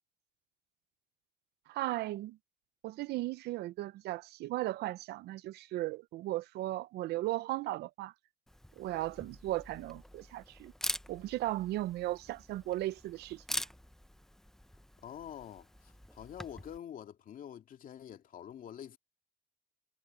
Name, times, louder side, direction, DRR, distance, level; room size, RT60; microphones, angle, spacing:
voice 1, 1.7-2.4 2.8-8.1 8.8-10.7 11.1-13.6, right 16 dB, 75° right, 0.6 m, -36 dB
Camera, 8.5-16.8, equal, ahead, 0.7 m, -44 dB
voice 2, 15.0-19.0, left 10 dB, 55° left, 2.3 m, -47 dB
cardioid pair, 110°, 17 cm